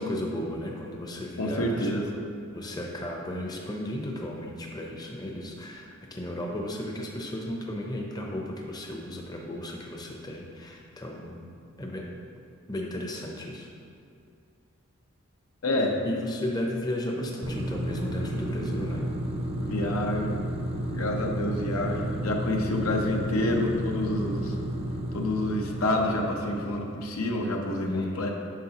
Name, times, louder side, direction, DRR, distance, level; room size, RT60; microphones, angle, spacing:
voice 1, 0.0-2.0 2.5-11.5 11.8-12.1 12.7-13.7 16.0-19.1 27.8-28.3, left 1 dB, 20° left, 0 dB, 0.6 m, -34 dB
voice 2, 1.4-2.1 15.6-16.0 19.6-20.4 20.9-24.5 25.1-28.3, left 1 dB, 85° left, 1 dB, 0.9 m, -28 dB
sound 1, 17.4-27.2, right 1 dB, 30° right, 0.6 m, -32 dB
9.3 x 6.7 x 2.9 m, 2.3 s
head